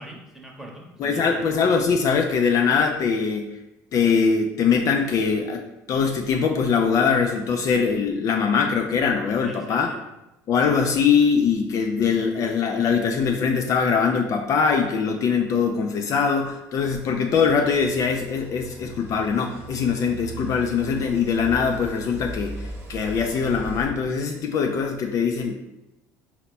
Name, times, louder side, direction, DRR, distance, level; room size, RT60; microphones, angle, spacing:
voice 1, 0.0-1.5 9.4-10.0, right 1 dB, 5° right, -1 dB, 1.0 m, -42 dB
voice 2, 1.0-3.6 3.9-5.6 5.9-9.9 10.5-25.5, left 6 dB, 50° left, 3 dB, 0.4 m, -22 dB
sound 1, 16.8-23.8, right 3 dB, 35° right, 0.9 m, -39 dB
4.2 x 2.1 x 4.1 m, 0.94 s
supercardioid pair, 85°, 7 cm